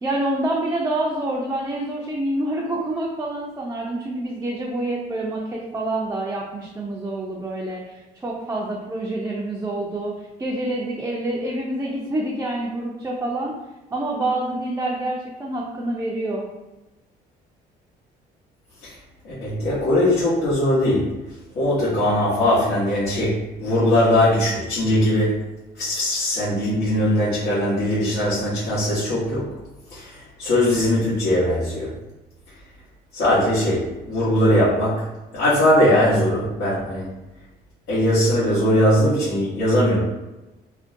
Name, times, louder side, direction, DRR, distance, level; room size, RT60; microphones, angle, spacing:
voice 1, 0.0-13.5 13.9-16.5, right 1 dB, 15° right, -4 dB, 0.4 m, -27 dB
voice 2, 19.2-21.2 21.5-23.3 23.6-25.4 25.8-29.6 29.9-31.9 33.1-35.1 35.3-37.1 37.9-40.0, left 1 dB, 85° left, -11 dB, 1.0 m, -20 dB
2.5 x 2.1 x 2.5 m, 1.0 s
cardioid pair, 110°, 17 cm